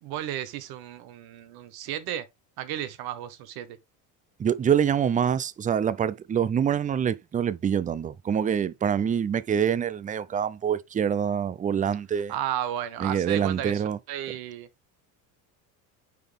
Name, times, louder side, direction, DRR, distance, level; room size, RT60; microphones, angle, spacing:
voice 1, 0.0-2.2 2.6-3.8 12.3-13.8 14.1-14.7, right 11 dB, 60° right, 1.1 m, -33 dB
voice 2, 4.4-12.3 13.0-14.0, right 8 dB, 20° right, 0.5 m, -25 dB
9.4 x 4.0 x 3.3 m
supercardioid pair, 105°, 41 cm